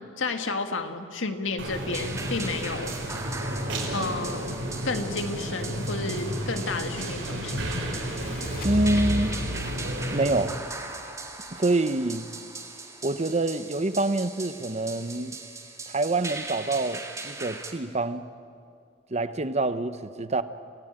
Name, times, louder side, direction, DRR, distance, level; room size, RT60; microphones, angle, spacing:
voice 1, 0.2-3.0 3.9-7.8, left 3 dB, 80° left, 1.8 m, -31 dB
sound 1, 1.6-10.4, equal, 80° right, 5.9 m, -32 dB
sound 2, 1.9-17.7, right 3 dB, 15° right, 2.3 m, -39 dB
sound 3, 6.1-11.8, equal, 50° left, 2.5 m, -36 dB
voice 2, 8.6-9.4 10.1-10.6 11.5-12.3 13.0-15.4 15.9-18.3 19.1-20.4, right 2 dB, 35° right, 0.9 m, -26 dB
28.5 x 17.0 x 9.0 m
head